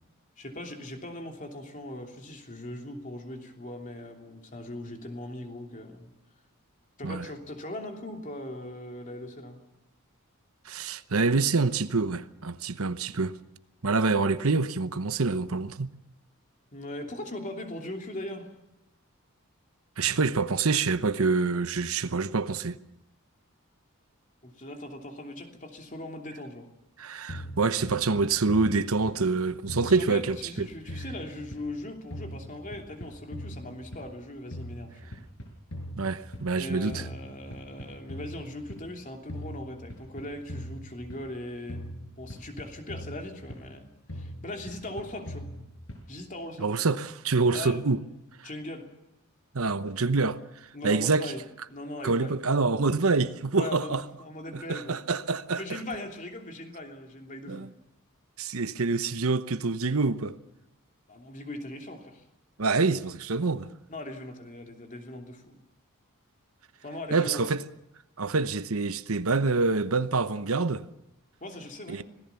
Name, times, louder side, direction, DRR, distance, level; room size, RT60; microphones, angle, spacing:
voice 1, 0.4-6.1 7.0-9.6 16.7-18.5 24.4-26.6 29.8-35.0 36.5-41.8 42.2-45.5 46.1-46.7 47.5-47.8 48.4-48.9 50.7-51.4 51.7-52.4 53.5-55.0 55.5-57.7 61.1-62.2 63.9-65.6 66.8-67.4 71.4-72.0, left 1 dB, 35° left, 3.1 m, -40 dB
voice 2, 10.6-13.4 13.8-15.9 20.0-22.8 27.0-30.7 36.0-37.1 46.6-48.0 48.4-48.5 49.5-50.4 50.8-51.3 52.0-54.0 54.5-55.8 57.5-57.7 58.4-60.4 62.6-63.7 67.1-67.6 68.2-70.8 71.9-72.0, right 4 dB, 80° right, 1.0 m, -26 dB
sound 1, 27.3-29.4 29.7-31.8 32.1-34.2 34.5-36.6 36.9-38.9 39.3-41.4 41.7-43.8 44.1-46.2, equal, 65° left, 6.0 m, -41 dB
26.0 x 18.0 x 7.1 m
head